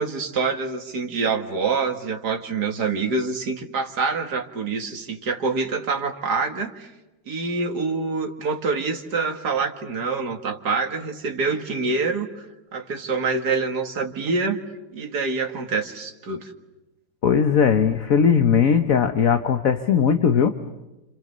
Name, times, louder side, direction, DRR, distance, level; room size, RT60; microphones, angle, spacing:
voice 1, 0.0-6.9 7.3-12.4 12.7-14.6 14.9-16.5, right 4 dB, 60° right, 4 dB, 2.5 m, -26 dB
voice 2, 17.2-20.5, left 7 dB, 50° left, 8 dB, 1.4 m, -18 dB
30.0 x 28.0 x 6.8 m, 1.0 s
omnidirectional pair, 2.0 m